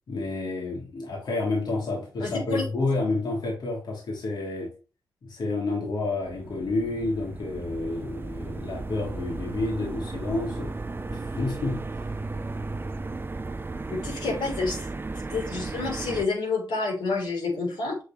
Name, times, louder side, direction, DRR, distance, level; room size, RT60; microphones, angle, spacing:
voice 1, 0.1-4.7 5.2-10.7 11.1-11.8, left 2 dB, 65° left, 3.0 m, -29 dB
voice 2, 2.2-2.7 13.9-14.9 15.3-18.0, left 3 dB, 85° left, 3.6 m, -29 dB
sound 1, 6.2-16.3, right 3 dB, 25° right, 0.6 m, -35 dB
6.7 x 6.4 x 3.1 m
cardioid pair, 60°, 8 cm